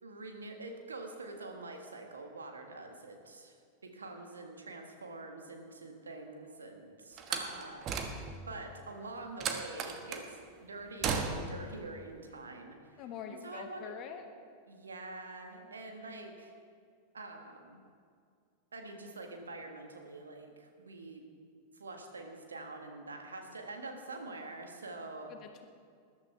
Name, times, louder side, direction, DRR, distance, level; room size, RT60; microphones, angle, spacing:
voice 1, 0.0-3.6 3.8-7.9 8.5-13.0 13.4-13.9 14.7-16.5 17.1-17.8 18.7-21.2 21.7-25.3, right 2 dB, 75° right, 3 dB, 1.7 m, -45 dB
Slam, 7.2-8.5 9.4-10.3 11.0-11.7, right 5 dB, 35° right, 1.2 m, -35 dB
voice 2, 13.0-14.2 15.6-15.8 25.3-25.6, left 7 dB, 35° left, 5 dB, 1.4 m, -45 dB
20.5 x 11.5 x 3.4 m, 2.2 s
figure-of-eight pair, 90°, 0 cm